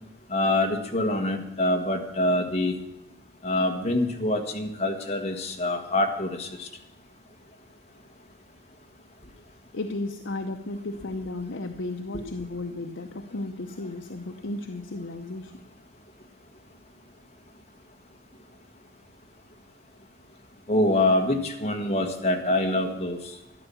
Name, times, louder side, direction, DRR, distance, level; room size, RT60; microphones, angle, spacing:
voice 1, 0.3-2.8 3.4-6.7 20.7-23.2, left 1 dB, 30° left, 3 dB, 1.6 m, -25 dB
voice 2, 9.7-15.5, left 2 dB, 70° left, 5 dB, 0.8 m, -34 dB
12.5 x 11.0 x 7.1 m, 0.89 s
head